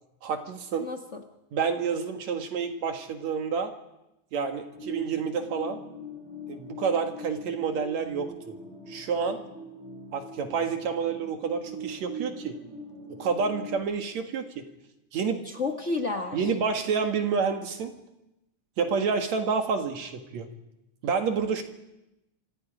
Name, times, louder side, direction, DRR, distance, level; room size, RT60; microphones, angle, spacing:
voice 1, 0.2-0.9 1.5-3.7 4.3-5.8 6.5-8.5 8.9-9.4 10.1-12.6 13.2-14.6 15.1-15.5 16.3-17.9 18.8-20.5 21.0-21.6, right 5 dB, 65° right, 5 dB, 2.8 m, -29 dB
voice 2, 0.8-1.2 15.4-16.4, left 3 dB, 55° left, 4 dB, 0.7 m, -31 dB
sound 1, 4.8-13.8, equal, 40° right, 6.2 m, -41 dB
28.5 x 26.5 x 5.1 m, 0.93 s
omnidirectional pair, 3.5 m